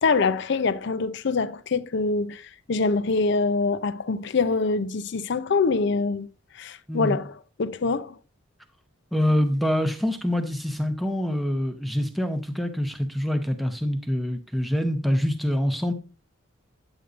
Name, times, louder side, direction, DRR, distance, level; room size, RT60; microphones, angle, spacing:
voice 1, 0.0-2.4 2.7-6.3 6.6-8.2, left 4 dB, 55° left, 0.5 m, -24 dB
voice 2, 6.9-7.2 9.1-15.9, equal, ahead, 0.8 m, -25 dB
9.3 x 8.1 x 2.5 m
head